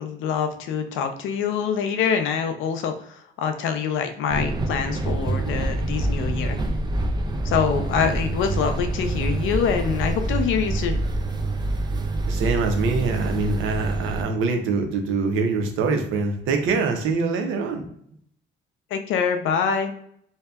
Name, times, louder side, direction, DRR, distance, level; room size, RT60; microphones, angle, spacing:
voice 1, 0.0-2.9 3.4-6.6 7.4-11.0 18.9-19.9, left 7 dB, 80° left, 7 dB, 0.5 m, -25 dB
sound 1, 4.3-14.2, right 2 dB, 20° right, 0.3 m, -26 dB
voice 2, 12.3-17.8, right 4 dB, 85° right, 5 dB, 0.6 m, -24 dB
2.6 x 2.1 x 2.3 m, 0.68 s
cardioid pair, 90°, 20 cm